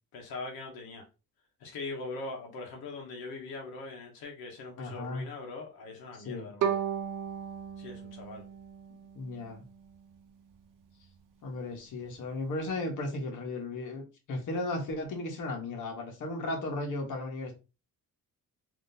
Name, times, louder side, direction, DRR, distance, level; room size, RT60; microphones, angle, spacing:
voice 1, 0.1-1.1 1.6-6.8 7.8-8.4, left 3 dB, 90° left, 1.0 m, -41 dB
voice 2, 4.8-5.3 6.2-6.5 9.1-9.6 11.4-17.5, left 2 dB, 55° left, 1.2 m, -35 dB
Bowed string instrument, 6.6-9.7, right 8 dB, 60° right, 0.7 m, -35 dB
3.6 x 2.7 x 2.7 m
cardioid pair, 135°, 36 cm